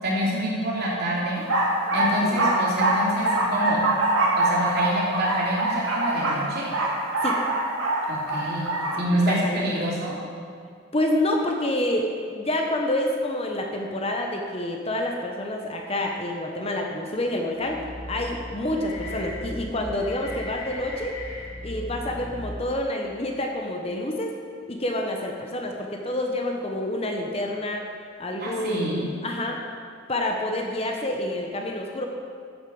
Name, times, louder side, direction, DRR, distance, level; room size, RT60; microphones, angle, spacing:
voice 1, 0.0-1.4 1.9-3.8 4.4-6.7 8.1-10.2 28.4-29.0, equal, 50° right, -5 dB, 3.3 m, -27 dB
sound 1, 1.4-9.0, right 2 dB, 65° right, 2.1 m, -24 dB
voice 2, 9.1-9.9 10.9-21.2 21.6-24.3 24.7-27.9 28.2-29.6 30.1-32.1, left 1 dB, 30° left, 2 dB, 0.9 m, -28 dB
sound 2, 17.6-22.9, left 1 dB, 75° left, 2.4 m, -37 dB
13.5 x 8.1 x 5.4 m, 2.3 s
head